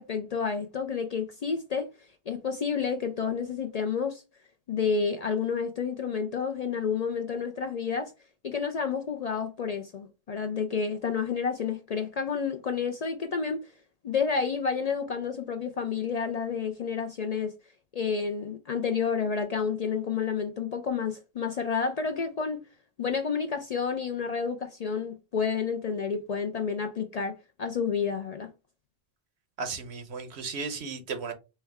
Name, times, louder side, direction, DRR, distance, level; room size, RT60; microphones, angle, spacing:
voice 1, 0.0-1.9 2.3-4.2 4.7-8.1 8.4-13.7 14.0-17.5 17.9-22.6 23.0-28.5, left 6 dB, 55° left, 0.4 m, -30 dB
voice 2, 29.6-31.3, right 5 dB, 85° right, 1.1 m, -35 dB
4.4 x 2.1 x 3.4 m
omnidirectional pair, 1.1 m